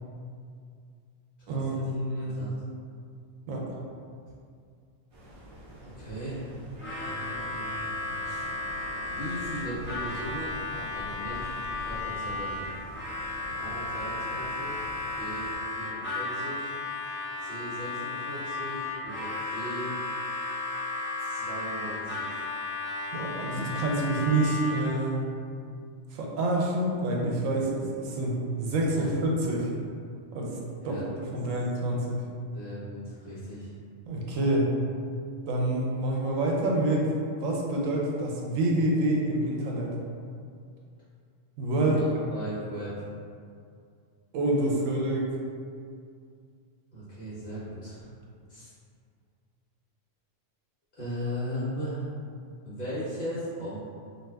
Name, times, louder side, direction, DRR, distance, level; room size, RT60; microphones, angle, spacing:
voice 1, 1.5-2.5 3.5-3.7 23.1-25.3 26.1-29.7 30.3-30.6 30.8-31.0 31.3-32.2 34.1-34.7 35.5-37.1 37.4-40.0 41.6-42.0 44.3-45.3, right 1 dB, 85° right, -2 dB, 1.0 m, -27 dB
voice 2, 2.2-2.5 5.8-6.6 7.0-7.9 8.2-8.5 9.1-12.5 13.5-14.8 15.2-16.7 17.4-19.9 21.2-22.6 29.0-29.1 30.8-31.0 32.5-33.7 41.8-43.0 46.9-48.1 48.5-48.7 50.9-52.1 52.6-53.8, equal, 45° left, -11 dB, 0.9 m, -38 dB
sound 1, 5.1-15.6, equal, 55° right, 0.3 m, -46 dB
Harmonica, 6.8-25.0, left 3 dB, 15° left, 0.4 m, -34 dB
2.5 x 2.4 x 3.3 m, 2.3 s
omnidirectional pair, 1.3 m